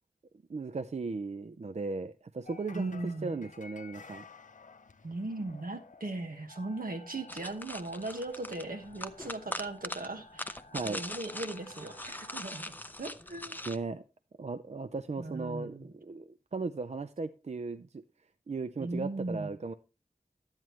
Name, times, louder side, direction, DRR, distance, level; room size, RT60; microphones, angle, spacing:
voice 1, 0.5-4.3 10.7-11.1 13.7-14.0 14.4-18.0 18.5-19.7, right 4 dB, 50° right, 0.4 m, -37 dB
sound 1, 2.4-12.6, left 3 dB, 60° left, 0.6 m, -54 dB
voice 2, 2.7-3.5 5.0-10.6 10.8-12.7 13.0-13.6 15.2-15.9 18.8-19.5, right 2 dB, 80° right, 1.3 m, -38 dB
sound 2, 7.3-13.8, left 1 dB, 10° left, 0.5 m, -41 dB
11.0 x 8.9 x 3.1 m
wide cardioid pair, 55°, 15 cm